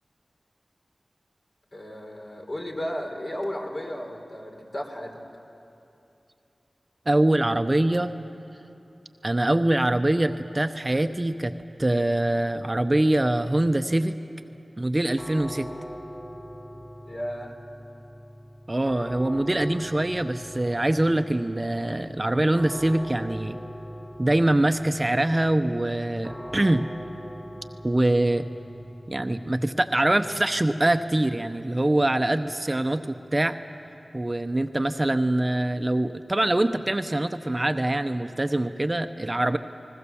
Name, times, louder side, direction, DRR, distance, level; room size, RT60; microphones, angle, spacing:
voice 1, 1.7-5.2 17.1-17.6, equal, 45° left, 1 dB, 3.6 m, -34 dB
voice 2, 7.1-8.1 9.2-14.2 14.8-15.7 18.7-23.6 24.2-26.9 27.8-28.5 29.1-33.6 34.1-39.6, right 1 dB, 30° right, 8 dB, 0.7 m, -24 dB
sound 1, 15.2-34.1, equal, 20° left, 3.9 m, -42 dB
29.0 x 20.5 x 7.1 m, 2.8 s
wide cardioid pair, 50°, 0 cm